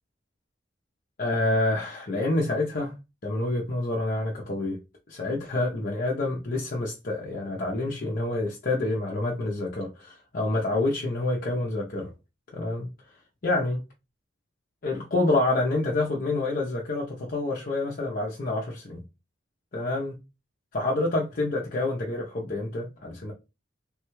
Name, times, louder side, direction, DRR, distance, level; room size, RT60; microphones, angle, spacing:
voice 1, 1.2-2.9 3.2-4.8 5.1-12.1 12.5-12.9 13.4-13.8 14.8-19.0 19.7-20.1 20.7-23.3, left 2 dB, 50° left, 0.6 m, -27 dB
3.4 x 2.2 x 3.0 m
head